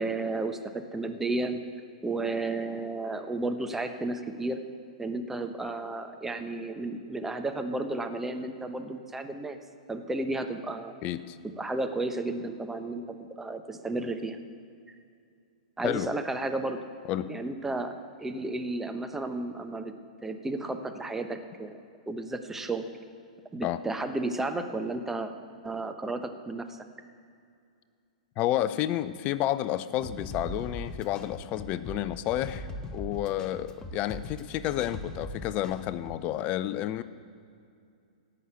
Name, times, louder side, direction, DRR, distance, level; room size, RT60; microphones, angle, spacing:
voice 1, 0.0-1.6 2.0-4.6 5.0-9.6 9.9-10.9 11.6-14.4 15.8-16.8 17.3-19.9 20.2-21.8 22.1-22.8 23.5-25.3 25.6-26.8, right 2 dB, 10° right, 7 dB, 1.0 m, -33 dB
voice 2, 11.0-11.4 15.8-16.1 17.1-17.3 23.6-23.8 28.4-37.0, left 13 dB, 35° left, 14 dB, 0.5 m, -30 dB
sound 1, 30.0-36.2, left 1 dB, 20° left, 1.1 m, -40 dB
16.5 x 6.4 x 8.2 m, 2.4 s
hypercardioid pair, 110°, 4 cm